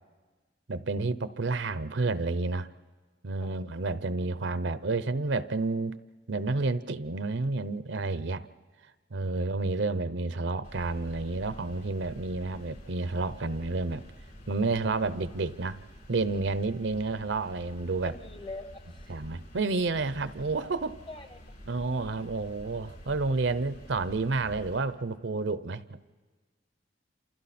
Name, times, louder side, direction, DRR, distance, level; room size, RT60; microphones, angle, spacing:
voice 1, 0.7-2.7 3.2-6.0 6.3-8.5 9.1-14.0 14.5-15.8 16.1-18.1 19.1-21.0 21.7-26.0, right 3 dB, 75° right, 14 dB, 0.7 m, -30 dB
sound 1, 10.6-24.8, equal, 60° left, 6.8 m, -49 dB
voice 2, 18.0-19.1 21.1-21.4, left 2 dB, 30° left, 10 dB, 1.0 m, -43 dB
28.5 x 27.5 x 4.3 m, 1.4 s
head